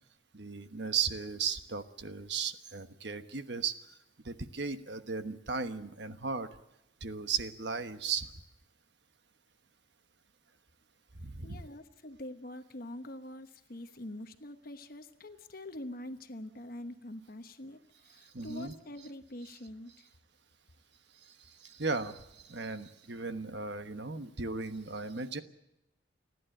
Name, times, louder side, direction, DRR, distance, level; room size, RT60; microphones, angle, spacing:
voice 1, 0.3-3.7 4.2-6.5 7.0-8.3 11.1-11.6 18.2-18.7 21.2-25.4, right 5 dB, 60° right, 10 dB, 1.2 m, -36 dB
voice 2, 11.4-20.1, left 1 dB, 50° left, 8 dB, 1.1 m, -45 dB
30.0 x 11.0 x 8.9 m, 0.89 s
head